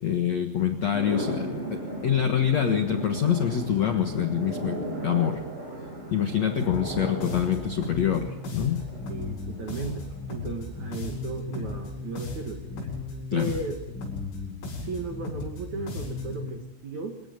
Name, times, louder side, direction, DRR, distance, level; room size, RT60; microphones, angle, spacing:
voice 1, 0.0-5.4 6.1-8.8 13.3-13.5, left 9 dB, 70° left, 5 dB, 1.6 m, -25 dB
sound 1, 0.9-11.3, right 1 dB, 15° right, 4.8 m, -37 dB
sound 2, 6.6-16.5, left 3 dB, 85° left, 10.0 m, -36 dB
voice 2, 9.1-12.6 13.3-13.8 14.8-17.2, right 3 dB, 55° right, 4 dB, 2.2 m, -35 dB
28.5 x 16.5 x 9.5 m, 0.96 s
omnidirectional pair, 5.6 m